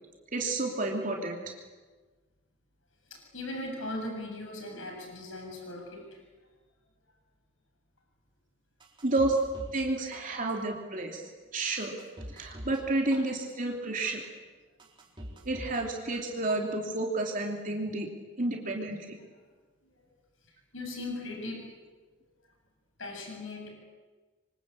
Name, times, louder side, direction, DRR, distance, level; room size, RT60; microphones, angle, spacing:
voice 1, 0.3-1.4 9.0-9.4 9.7-11.9 12.3-14.2 15.4-18.1 18.4-19.2, right 2 dB, 40° right, 1 dB, 3.1 m, -30 dB
voice 2, 3.1-6.2 20.7-21.7 23.0-23.7, left 2 dB, 80° left, 2 dB, 7.5 m, -38 dB
sound 1, 8.8-9.8 10.1-10.7 11.2-11.3 11.8-12.8 13.1-13.7 14.2-14.3 14.8-15.8 16.1-16.7 17.1-17.2, equal, 25° right, 4.1 m, -45 dB
27.0 x 24.5 x 8.7 m, 1.3 s
head